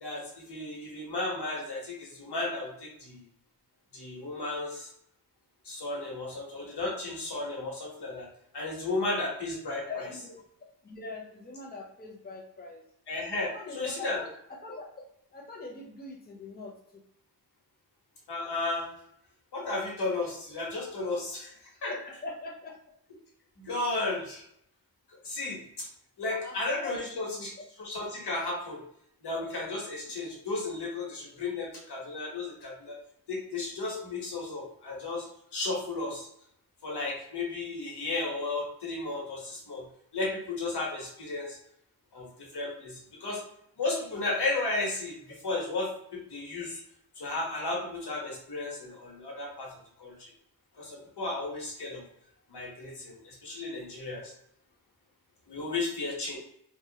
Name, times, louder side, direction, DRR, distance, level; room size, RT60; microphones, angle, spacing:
voice 1, 0.0-3.2 3.9-4.9 5.6-8.3 8.5-9.9 13.1-13.5 13.7-14.2 18.3-18.9 19.5-21.5 21.8-21.9 23.6-24.4 25.2-25.9 26.2-27.5 27.8-28.8 29.2-33.0 33.3-35.2 35.5-36.3 36.8-39.8 40.1-41.6 42.1-43.4 43.8-45.2 45.4-46.8 47.2-49.7 50.0-50.3 50.8-52.0 52.5-54.3 55.5-56.4, left 2 dB, 90° left, -3 dB, 1.1 m, -34 dB
voice 2, 9.9-10.4 10.8-12.8 13.4-14.9 15.3-17.0 21.9-22.9 26.3-27.1 27.3-27.5, left 3 dB, 25° left, -1 dB, 0.6 m, -42 dB
2.9 x 2.4 x 2.8 m, 0.70 s
wide cardioid pair, 75°, 39 cm